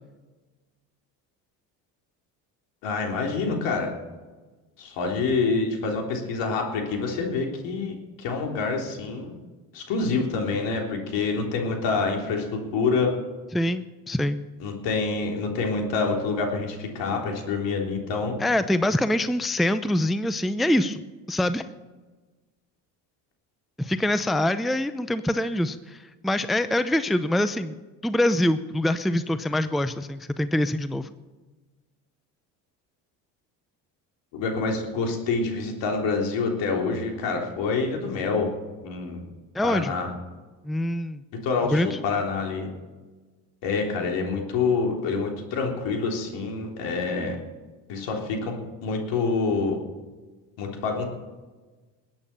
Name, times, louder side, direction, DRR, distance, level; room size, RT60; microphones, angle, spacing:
voice 1, 2.8-3.9 4.8-9.4 9.7-12.5 12.7-13.1 14.6-18.4 34.3-38.5 38.8-39.2 39.6-40.1 41.4-42.7 43.6-47.4 47.9-48.5 48.8-49.8 50.6-51.1, left 4 dB, 70° left, 1 dB, 3.8 m, -27 dB
voice 2, 13.5-14.4 18.4-21.0 21.3-21.6 23.8-31.1 39.5-39.9 40.6-41.2 41.7-42.0, left 1 dB, ahead, 12 dB, 0.6 m, -24 dB
21.0 x 8.8 x 6.9 m, 1.3 s
supercardioid pair, 80°, 45 cm